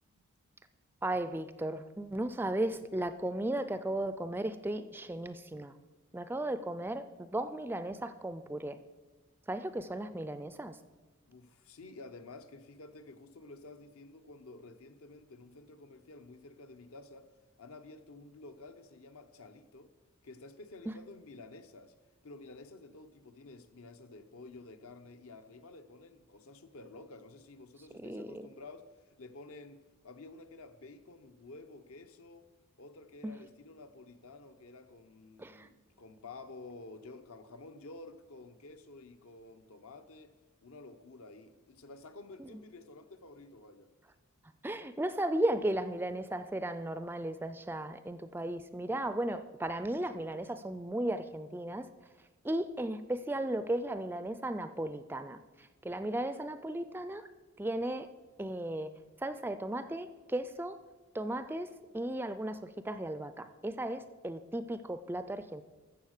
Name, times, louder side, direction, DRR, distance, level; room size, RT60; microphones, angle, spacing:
voice 1, 1.0-5.8 6.1-8.8 9.5-10.8 20.9-21.0 28.0-28.5 33.2-33.3 35.4-35.7 42.4-42.5 44.6-51.9 52.4-57.3 57.6-58.1 58.4-58.9 59.2-60.8 61.1-61.7 61.9-65.6, right 1 dB, 10° right, 0.3 m, -35 dB
voice 2, 11.2-17.3 17.6-19.9 20.2-21.9 22.2-32.5 32.8-40.4 40.6-43.9, left 3 dB, 75° left, 0.9 m, -51 dB
14.0 x 7.2 x 6.5 m
head